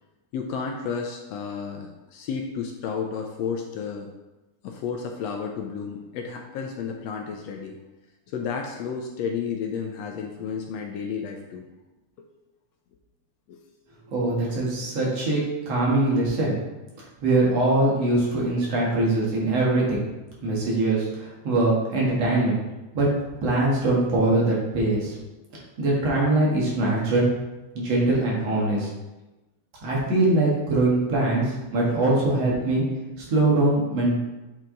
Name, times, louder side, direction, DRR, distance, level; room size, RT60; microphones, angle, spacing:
voice 1, 0.3-4.1 4.6-7.8 8.3-11.7 13.5-13.6, left 6 dB, 75° left, 2 dB, 1.6 m, -32 dB
voice 2, 14.1-16.6 17.2-20.1 20.4-22.5 22.9-23.1 23.4-25.2 25.8-27.3 27.7-28.9 29.8-32.8 33.2-34.1, right 2 dB, 60° right, -4 dB, 2.7 m, -22 dB
8.1 x 4.6 x 3.8 m, 1.1 s
omnidirectional pair, 3.4 m